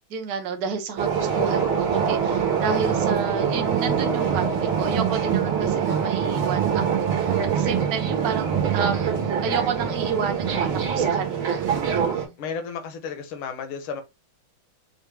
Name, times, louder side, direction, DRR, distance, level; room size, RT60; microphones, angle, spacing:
voice 1, 0.1-9.1 9.4-11.7 11.9-12.3, right 5 dB, 55° right, 1.3 m, -31 dB
sound 1, 1.0-12.3, right 7 dB, 80° right, 2.0 m, -24 dB
voice 2, 12.4-14.0, left 6 dB, 85° left, 1.8 m, -33 dB
6.2 x 2.4 x 3.4 m
omnidirectional pair, 2.2 m